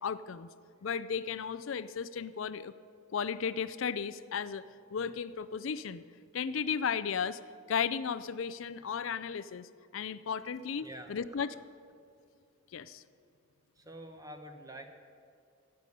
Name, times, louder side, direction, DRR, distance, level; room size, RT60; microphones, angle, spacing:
voice 1, 0.0-0.5 0.8-2.7 3.1-6.0 6.3-7.4 7.7-11.5 12.7-13.0, left 6 dB, 65° left, 14 dB, 0.4 m, -35 dB
voice 2, 10.8-11.2 13.8-14.9, right 1 dB, 15° right, 5 dB, 1.2 m, -47 dB
16.0 x 6.9 x 9.9 m, 2.3 s
head